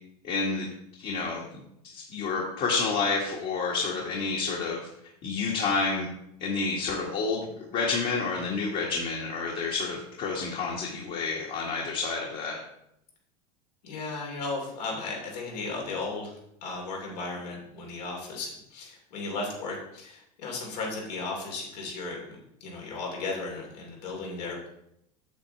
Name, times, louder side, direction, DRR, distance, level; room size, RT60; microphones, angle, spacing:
voice 1, 0.2-0.7 1.0-4.9 5.2-6.1 6.4-12.6, left 4 dB, 50° left, -3 dB, 1.7 m, -29 dB
voice 2, 13.8-24.6, left 3 dB, 80° left, -1 dB, 2.7 m, -35 dB
8.4 x 7.8 x 3.3 m, 0.78 s
hypercardioid pair, 95°, 20 cm